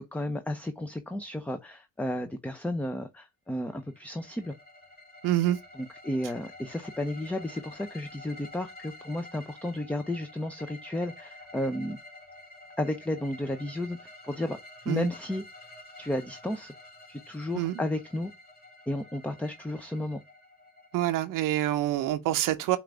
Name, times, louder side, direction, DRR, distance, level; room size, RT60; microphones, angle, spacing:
voice 1, 0.0-4.5 5.7-12.0 12.8-14.6 14.9-15.4 16.0-16.7 17.1-18.3 18.9-20.2, left 1 dB, 5° left, 0.5 m, -33 dB
sound 1, 3.7-21.5, left 2 dB, 30° left, 1.9 m, -49 dB
voice 2, 5.2-5.6 14.9-15.1 17.5-17.7 20.9-22.8, right 14 dB, 75° right, 0.7 m, -26 dB
5.8 x 2.5 x 3.2 m
cardioid pair, 95°, 33 cm